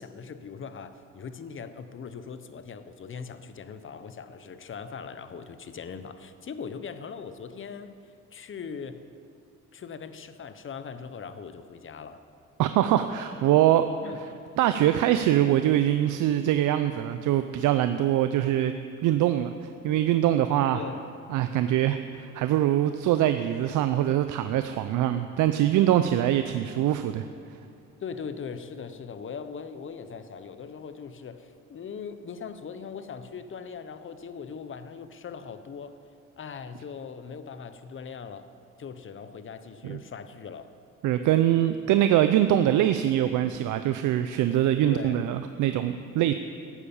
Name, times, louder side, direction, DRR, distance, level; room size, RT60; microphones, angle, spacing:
voice 1, 0.0-7.9 8.3-9.0 9.7-12.2 14.0-14.2 20.7-21.0 28.0-36.0 36.4-38.5 38.8-40.7 44.8-45.2, left 6 dB, 40° left, 11 dB, 0.9 m, -40 dB
voice 2, 12.6-14.3 14.6-18.7 19.0-19.5 19.8-20.8 21.3-27.3 39.8-40.0 41.0-46.3, right 12 dB, 85° right, 9 dB, 0.5 m, -23 dB
13.0 x 8.4 x 7.1 m, 2.4 s
cardioid pair, 90°, 30 cm